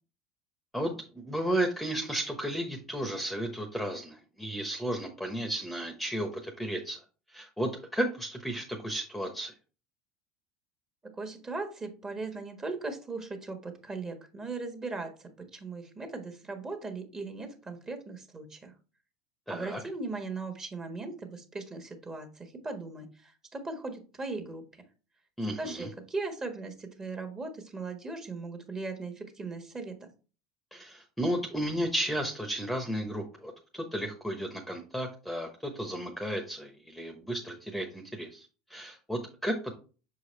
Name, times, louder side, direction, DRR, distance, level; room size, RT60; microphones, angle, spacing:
voice 1, 0.7-7.0 7.3-9.5 19.5-19.8 25.4-25.9 30.7-39.7, right 1 dB, ahead, 4 dB, 1.0 m, -33 dB
voice 2, 11.2-18.7 19.5-24.6 25.6-30.1, right 3 dB, 20° right, 5 dB, 1.5 m, -38 dB
6.3 x 4.7 x 3.3 m, 0.36 s
supercardioid pair, 100°, 3 cm